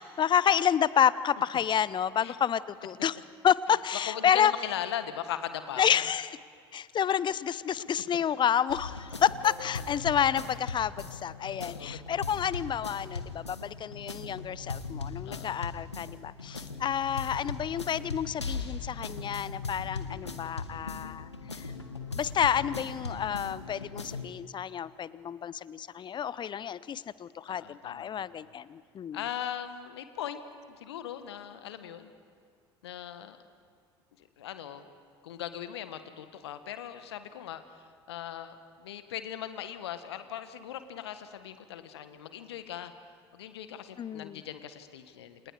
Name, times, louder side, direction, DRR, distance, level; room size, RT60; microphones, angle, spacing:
voice 1, 0.0-3.2 3.4-4.5 5.8-6.3 6.7-21.7 22.1-29.2 44.0-44.4, left 8 dB, 35° left, 18 dB, 0.8 m, -29 dB
voice 2, 4.1-6.1 7.8-7.9 11.6-12.0 15.2-15.6 27.5-28.5 29.1-30.4 30.7-32.1 32.8-33.4 34.2-34.9 35.2-42.9 43.3-45.5, left 10 dB, 75° left, 10 dB, 1.4 m, -39 dB
sound 1, 8.7-24.3, left 4 dB, 90° left, 1.2 m, -39 dB
29.0 x 28.0 x 4.9 m, 2.2 s
figure-of-eight pair, 65°, 14 cm